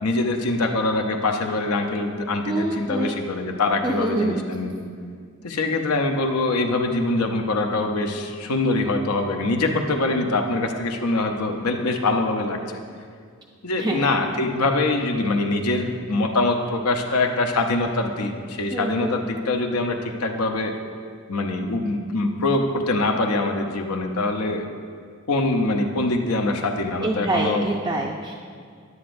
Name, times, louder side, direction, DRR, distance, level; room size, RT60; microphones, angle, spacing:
voice 1, 0.0-4.8 5.4-12.6 13.6-20.7 21.3-24.7 25.3-27.7, left 2 dB, 85° left, 4 dB, 0.7 m, -24 dB
voice 2, 2.4-3.2 3.8-4.4 13.8-14.1 18.7-19.2 27.0-28.3, right 2 dB, 20° right, -3 dB, 0.4 m, -26 dB
10.0 x 9.5 x 2.6 m, 2.1 s
head